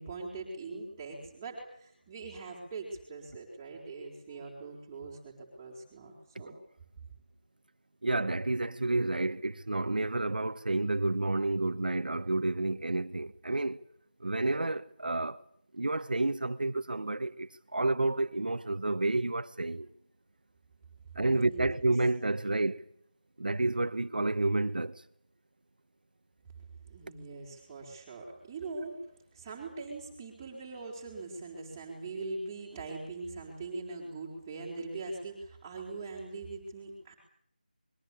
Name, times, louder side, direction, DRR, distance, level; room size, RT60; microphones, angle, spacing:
voice 1, 0.0-6.6 7.0-7.1 21.3-21.7 26.6-37.1, right 3 dB, 10° right, 4.7 m, -42 dB
voice 2, 8.0-13.8 14.2-15.4 15.7-19.9 21.1-22.8 23.4-25.0, right 2 dB, 70° right, 1.4 m, -30 dB
26.0 x 23.0 x 8.7 m
figure-of-eight pair, 175°, 5 cm